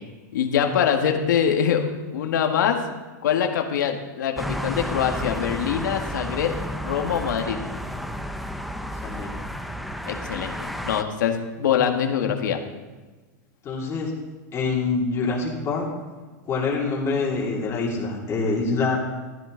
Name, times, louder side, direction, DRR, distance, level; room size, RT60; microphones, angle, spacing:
voice 1, 0.3-2.8 3.2-7.6 10.1-12.6, left 8 dB, 90° left, 4 dB, 1.7 m, -24 dB
sound 1, 4.4-11.0, equal, ahead, 0.6 m, -31 dB
voice 2, 13.6-14.1 14.5-15.8 16.4-19.0, left 4 dB, 30° left, -3 dB, 2.9 m, -25 dB
14.0 x 10.5 x 3.9 m, 1.3 s
supercardioid pair, 140°, 10 cm